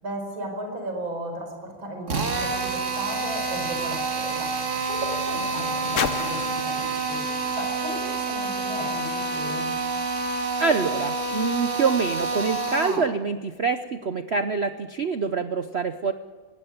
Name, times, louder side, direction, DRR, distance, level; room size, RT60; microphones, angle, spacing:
voice 1, 0.0-7.2 7.5-9.7, right 1 dB, 70° right, 3 dB, 5.7 m, -35 dB
Drill, 2.1-13.1, right 3 dB, 40° right, 1.8 m, -28 dB
sound 1, 4.1-8.9 9.8-9.9, left 8 dB, 55° left, 0.9 m, -37 dB
voice 2, 10.6-16.1, right 4 dB, 85° right, 10 dB, 0.5 m, -25 dB
21.0 x 17.0 x 9.5 m, 1.3 s
omnidirectional pair, 2.3 m